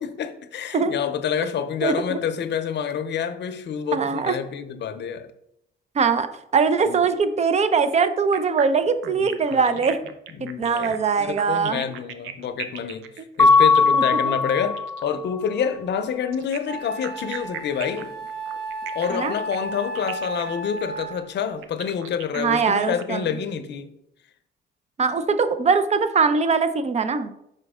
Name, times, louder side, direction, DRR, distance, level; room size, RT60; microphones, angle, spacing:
voice 1, 0.0-5.3 6.9-7.0 9.0-9.8 10.4-18.1 18.9-23.9, left 7 dB, 60° left, 0.6 m, -28 dB
voice 2, 1.8-2.2 3.9-4.4 5.9-10.0 10.6-11.8 13.9-14.3 19.1-19.3 22.4-23.3 25.0-27.3, right 5 dB, 35° right, 0.6 m, -22 dB
sound 1, 8.3-15.1 16.3-23.0, right 9 dB, 85° right, 0.6 m, -38 dB
Mallet percussion, 13.4-15.2, left 4 dB, 10° left, 0.7 m, -18 dB
Wind instrument woodwind instrument, 16.0-16.1 16.7-21.3, right 2 dB, 55° right, 2.5 m, -34 dB
5.5 x 5.1 x 3.6 m
cardioid pair, 90°, 20 cm